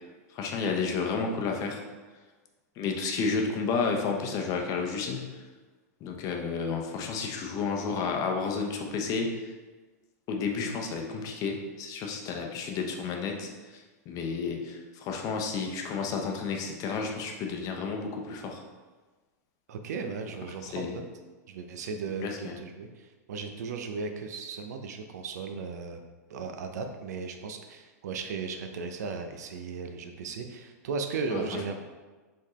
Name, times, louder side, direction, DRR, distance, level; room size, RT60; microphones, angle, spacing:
voice 1, 0.3-1.8 2.8-5.3 6.0-9.5 10.3-18.6 20.7-21.0 22.2-22.6 31.3-31.4, left 5 dB, 40° left, 2 dB, 0.7 m, -31 dB
voice 2, 19.7-21.0 21.5-26.0 26.3-31.8, right 4 dB, 75° right, 6 dB, 0.6 m, -36 dB
4.4 x 3.7 x 3.1 m, 1.3 s
hypercardioid pair, 115°, 9 cm